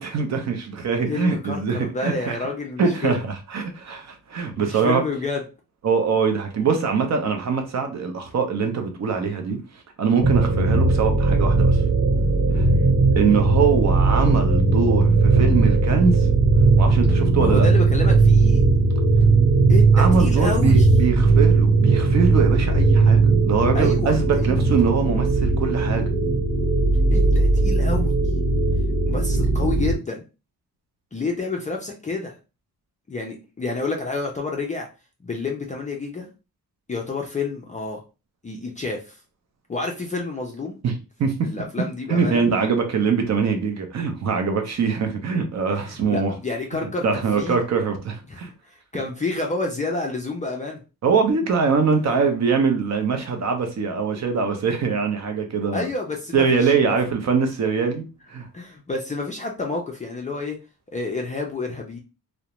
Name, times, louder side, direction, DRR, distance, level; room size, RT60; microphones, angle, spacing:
voice 1, 0.0-2.4 2.8-5.0 5.8-9.6 10.0-11.8 12.5-12.7 13.2-16.3 16.8-17.7 19.9-26.1 40.8-41.5 42.1-46.3 47.0-48.5 51.0-55.9 56.3-58.5, right 5 dB, 45° right, 0.6 m, -23 dB
voice 2, 1.1-3.2 4.6-5.4 12.7-12.9 17.4-18.7 19.7-20.9 23.7-24.6 27.1-28.1 29.1-30.2 31.1-32.4 33.1-34.9 35.2-36.3 36.9-38.0 38.4-39.2 39.7-40.8 41.4-42.4 44.7-44.8 45.7-47.6 48.3-50.8 55.7-57.0 58.5-60.6 60.9-62.0, left 3 dB, 20° left, 0.3 m, -29 dB
sound 1, 10.2-30.0, right 3 dB, 80° right, 1.0 m, -18 dB
2.4 x 2.1 x 2.9 m
wide cardioid pair, 155°, 37 cm